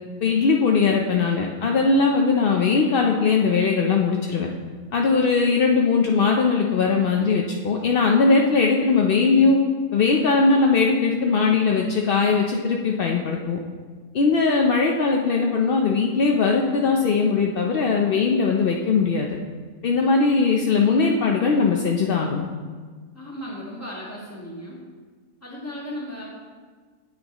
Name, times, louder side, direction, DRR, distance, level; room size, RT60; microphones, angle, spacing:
voice 1, 0.2-4.5 4.9-9.6 9.9-13.6 14.1-19.4 19.8-22.5, left 4 dB, 65° left, 1 dB, 0.5 m, -20 dB
voice 2, 23.1-24.8 25.4-26.3, equal, 10° left, -5 dB, 1.6 m, -35 dB
9.2 x 7.8 x 2.9 m, 1.5 s
omnidirectional pair, 1.6 m